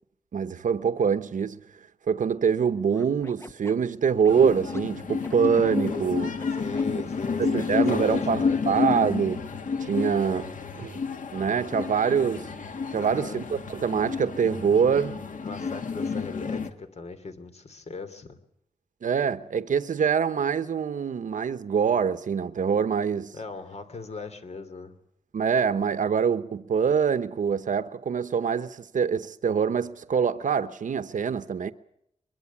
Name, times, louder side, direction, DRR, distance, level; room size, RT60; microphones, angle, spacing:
voice 1, 0.3-1.6 2.1-6.3 7.4-9.4 9.8-10.5 10.8-11.0 11.3-12.5 12.9-15.2 19.0-23.4 25.3-31.7, right 6 dB, 80° right, 0.9 m, -25 dB
Scratching (performance technique), 2.9-4.8 5.2-6.8 7.5-8.2, left 2 dB, 20° left, 1.1 m, -45 dB
sound 1, 4.3-16.7, left 5 dB, 85° left, 2.0 m, -30 dB
voice 2, 6.6-8.6 12.9-13.4 15.4-18.4 23.3-25.0, left 4 dB, 55° left, 2.9 m, -38 dB
23.0 x 22.5 x 7.2 m
wide cardioid pair, 115°, 13 cm